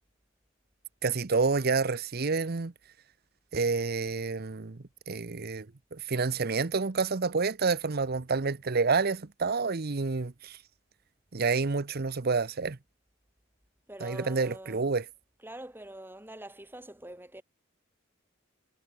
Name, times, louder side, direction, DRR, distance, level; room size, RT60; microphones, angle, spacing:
voice 1, 1.0-2.7 3.5-10.6 11.3-12.8 14.0-15.0, right 4 dB, 50° right, 0.8 m, -29 dB
voice 2, 13.9-15.0 15.4-17.4, right 1 dB, 10° right, 4.9 m, -45 dB
head